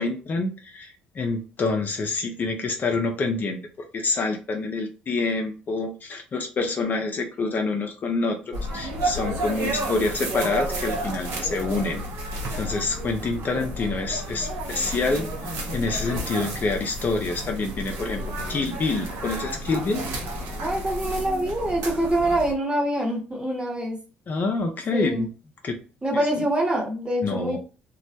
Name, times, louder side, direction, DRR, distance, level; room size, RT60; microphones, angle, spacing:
voice 1, 0.0-3.6 3.9-12.0 12.6-18.2 18.5-20.1 24.3-25.3 25.6-25.8 26.1-26.4 27.2-27.6, left 3 dB, 40° left, 3 dB, 0.5 m, -27 dB
sound 1, 8.5-22.5, right 1 dB, 60° right, 0.7 m, -31 dB
voice 2, 20.6-24.0 24.9-25.3 26.0-27.6, right 1 dB, 20° right, 0 dB, 1.0 m, -25 dB
2.2 x 2.0 x 2.7 m, 0.35 s
hypercardioid pair, 60°, 5 cm